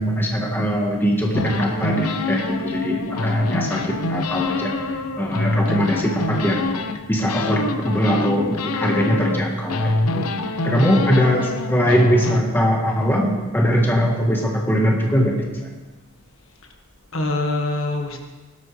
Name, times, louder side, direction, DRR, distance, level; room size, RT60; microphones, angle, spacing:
voice 1, 0.0-6.7 7.1-10.3 10.6-15.7, equal, 10° left, -1 dB, 1.5 m, -21 dB
sound 1, 1.3-7.0 7.3-9.4 9.7-12.4, left 2 dB, 85° left, 0.9 m, -25 dB
voice 2, 10.7-11.1 17.1-18.2, left 2 dB, 65° left, 3 dB, 1.6 m, -25 dB
17.0 x 13.0 x 3.4 m, 1.2 s
head